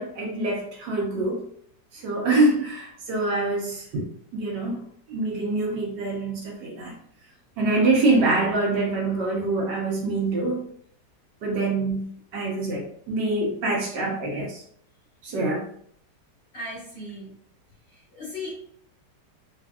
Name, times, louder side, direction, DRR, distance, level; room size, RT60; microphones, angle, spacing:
voice 1, 0.0-1.4 1.9-4.0 4.3-4.8 5.1-6.9 7.6-10.7 11.4-12.0 12.3-14.6 15.2-15.6, right 2 dB, 75° right, -2 dB, 1.4 m, -25 dB
voice 2, 16.5-17.3 18.1-18.6, left 1 dB, 40° left, -8 dB, 1.0 m, -36 dB
3.4 x 2.5 x 2.3 m, 0.66 s
omnidirectional pair, 2.0 m